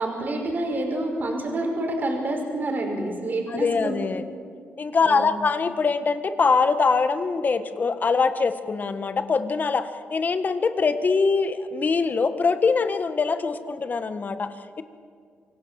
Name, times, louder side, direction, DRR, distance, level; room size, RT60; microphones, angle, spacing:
voice 1, 0.0-4.0 5.0-5.4, right 1 dB, 45° right, 2 dB, 5.4 m, -28 dB
voice 2, 3.5-4.2 4.8-14.8, left 4 dB, 40° left, 10 dB, 1.6 m, -23 dB
26.0 x 17.5 x 7.7 m, 2.1 s
cardioid pair, 90°, 4 cm